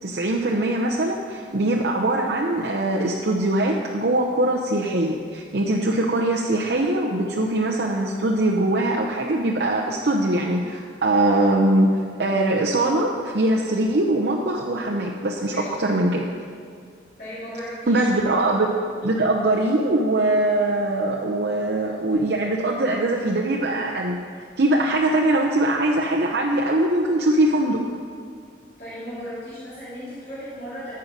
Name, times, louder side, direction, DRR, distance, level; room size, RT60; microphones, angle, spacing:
voice 1, 0.0-11.9 12.2-16.3 17.9-18.7 19.0-24.2 24.6-27.8, right 1 dB, 65° right, -2 dB, 0.7 m, -22 dB
voice 2, 15.5-15.9 17.2-18.4 28.8-31.0, equal, 50° left, -12 dB, 3.1 m, -36 dB
14.0 x 5.7 x 5.3 m, 2.2 s
head